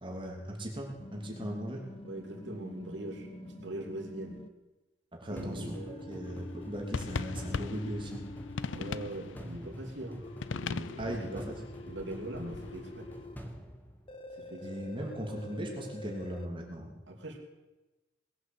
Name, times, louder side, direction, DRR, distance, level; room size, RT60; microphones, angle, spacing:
voice 1, 0.0-1.8 5.2-5.7 6.1-8.2 11.0-11.4 14.6-16.9, equal, 25° right, 0 dB, 2.9 m, -38 dB
sound 1, 1.0-4.5 5.6-9.1 10.2-13.4 14.1-16.5, left 1 dB, 30° left, 1.0 m, -47 dB
voice 2, 2.0-4.4 5.3-6.2 8.7-10.2 10.5-11.5 11.9-13.1 14.4-14.9 17.1-17.4, right 1 dB, 75° right, 2 dB, 2.9 m, -41 dB
sound 2, 5.4-14.5, equal, 10° left, 1.6 m, -47 dB
sound 3, 6.3-13.2, left 5 dB, 85° left, 0.5 m, -40 dB
19.5 x 8.2 x 7.9 m, 1.1 s
head